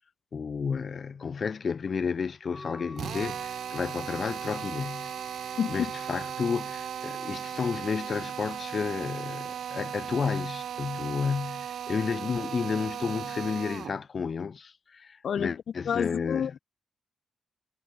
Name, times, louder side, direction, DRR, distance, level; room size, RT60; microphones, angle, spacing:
voice 1, 0.3-5.1 5.4-16.6, left 5 dB, 55° left, 1.9 m, -32 dB
Wind instrument woodwind instrument, 2.4-8.3, left 2 dB, 20° left, 6.4 m, -48 dB
Drill, 3.0-14.0, right 9 dB, 75° right, 0.9 m, -37 dB
voice 2, 5.6-5.9 15.2-15.6 15.9-16.5, left 8 dB, 70° left, 0.6 m, -28 dB
cardioid pair, 65°, 0 cm